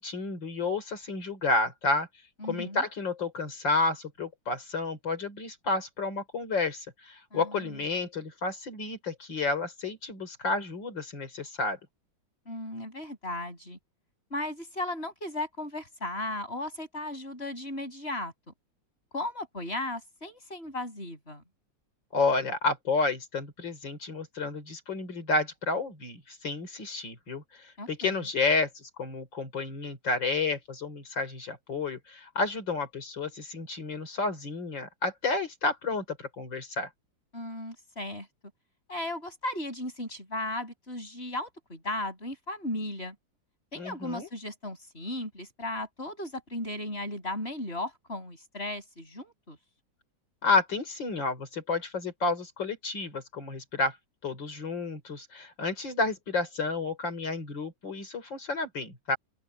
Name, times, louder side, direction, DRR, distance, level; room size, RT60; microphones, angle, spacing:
voice 1, 0.0-2.1 2.5-11.8 22.1-36.9 43.8-44.3 50.4-54.0 54.2-59.2, left 3 dB, 75° left, 4.4 m, -31 dB
voice 2, 2.4-2.8 7.3-7.9 12.5-13.8 14.3-18.5 19.1-21.4 27.8-28.3 37.3-38.3 38.9-43.2 43.7-49.6, left 1 dB, 30° left, 8.0 m, -36 dB
open air
omnidirectional pair, 2.0 m